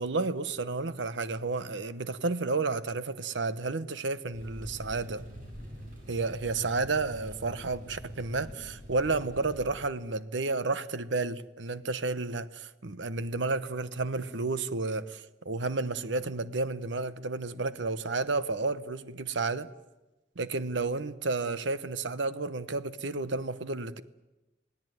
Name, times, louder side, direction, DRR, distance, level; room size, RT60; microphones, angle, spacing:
voice 1, 0.0-5.2 6.1-19.7 20.4-24.0, right 3 dB, 75° right, 14 dB, 1.0 m, -31 dB
sound 1, 4.3-9.7, equal, 45° right, 7.4 m, -45 dB
26.5 x 17.5 x 9.3 m, 1.1 s
head